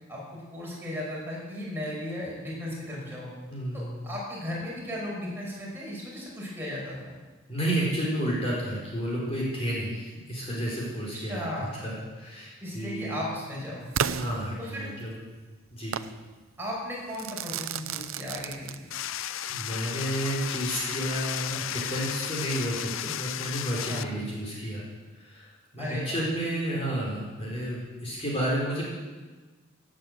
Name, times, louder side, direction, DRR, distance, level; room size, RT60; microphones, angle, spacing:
voice 1, 0.1-3.3 3.7-7.2 11.3-11.7 12.6-13.9 14.6-14.9 16.6-18.9 23.9-24.1 25.8-26.2, left 1 dB, 10° right, -5 dB, 5.7 m, -36 dB
voice 2, 3.5-4.0 7.5-11.5 11.7-13.2 14.1-15.1 15.7-15.9 19.5-24.8 25.1-28.9, right 1 dB, 30° left, -4 dB, 4.1 m, -31 dB
Crackle / Fireworks, 13.9-15.1 15.9-16.2 17.1-19.1, right 7 dB, 80° right, 0.6 m, -32 dB
sound 1, 18.9-24.0, left 11 dB, 70° left, 0.5 m, -34 dB
17.0 x 8.9 x 7.8 m, 1.3 s
head